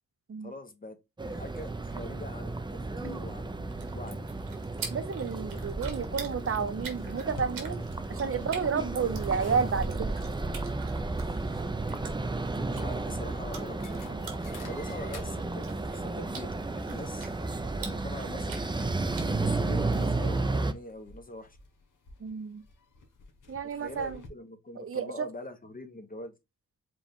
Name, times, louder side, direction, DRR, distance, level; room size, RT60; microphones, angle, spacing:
voice 1, 0.4-1.0 1.3-4.2 5.5-5.7 12.6-14.1 14.6-15.7 15.9-17.3 17.8-18.6 19.3-21.6 23.7-26.3, left 1 dB, 25° left, 1.0 m, -43 dB
sound 1, 1.2-20.7, right 2 dB, 15° right, 0.5 m, -33 dB
sound 2, 3.5-20.1, right 6 dB, 90° right, 1.4 m, -47 dB
voice 2, 4.9-7.8 8.1-10.2 22.2-22.6 23.5-24.2 24.8-25.3, right 6 dB, 40° right, 0.8 m, -31 dB
sound 3, 5.9-24.3, left 3 dB, 65° left, 1.4 m, -51 dB
4.9 x 2.5 x 3.6 m
cardioid pair, 70°, 34 cm